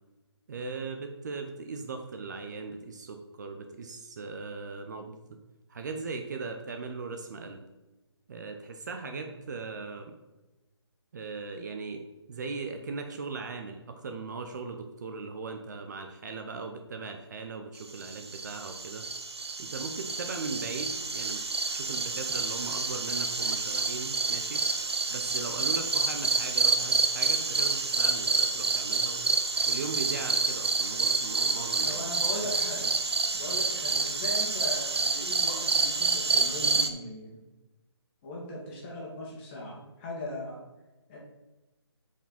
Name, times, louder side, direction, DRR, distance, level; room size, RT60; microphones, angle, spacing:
voice 1, 0.5-5.2 5.7-7.6 8.3-10.2 11.1-19.1 19.6-21.4 21.7-24.6 25.1-29.3 29.7-32.0 32.3-32.5, right 4 dB, 40° right, 5 dB, 0.7 m, -39 dB
sound 1, 18.0-36.9, right 4 dB, 65° right, 1.0 m, -28 dB
voice 2, 31.8-33.0 33.3-37.3 38.2-40.6 41.1-41.2, left 1 dB, 25° left, -3 dB, 2.3 m, -39 dB
8.7 x 5.2 x 4.2 m, 1.1 s
figure-of-eight pair, 150°, 15 cm